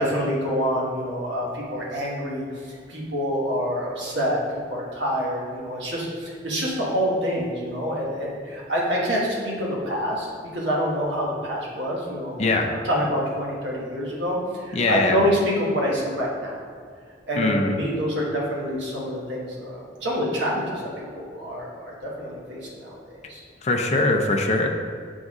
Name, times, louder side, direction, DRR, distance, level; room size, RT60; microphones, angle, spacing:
voice 1, 0.0-4.4 4.7-16.5 17.3-20.8 21.1-22.9 23.3-23.4, equal, 90° right, -4 dB, 1.4 m, -26 dB
voice 2, 12.4-12.7 14.7-15.2 17.4-17.7 23.6-24.7, left 2 dB, 40° left, 2 dB, 0.5 m, -22 dB
6.0 x 4.0 x 4.9 m, 2.1 s
head